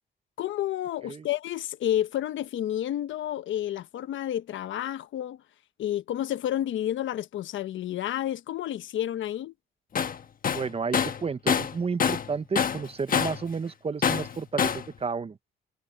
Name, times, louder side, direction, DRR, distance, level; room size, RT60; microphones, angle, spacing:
voice 1, 0.4-5.4 5.8-9.5, left 12 dB, 75° left, 1.1 m, -30 dB
Tools, 10.0-10.2 10.4-12.3 12.6-13.5 14.0-14.9, left 7 dB, 45° left, 1.3 m, -26 dB
voice 2, 10.5-15.4, right 5 dB, 30° right, 0.9 m, -32 dB
cardioid pair, 90°, 20 cm